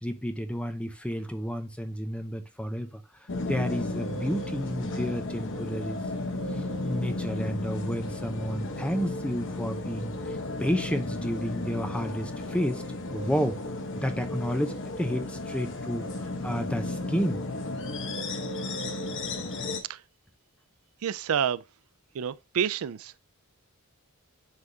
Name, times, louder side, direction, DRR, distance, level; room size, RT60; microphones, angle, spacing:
voice 1, 0.0-3.0 3.5-6.0 6.8-10.1 10.6-12.8 13.1-13.6 14.0-17.4, equal, 5° left, 0.7 m, -31 dB
sound 1, 3.3-19.8, left 2 dB, 55° left, 0.9 m, -34 dB
voice 2, 21.0-21.6 22.1-23.2, right 8 dB, 65° right, 0.4 m, -29 dB
9.7 x 3.5 x 2.7 m
head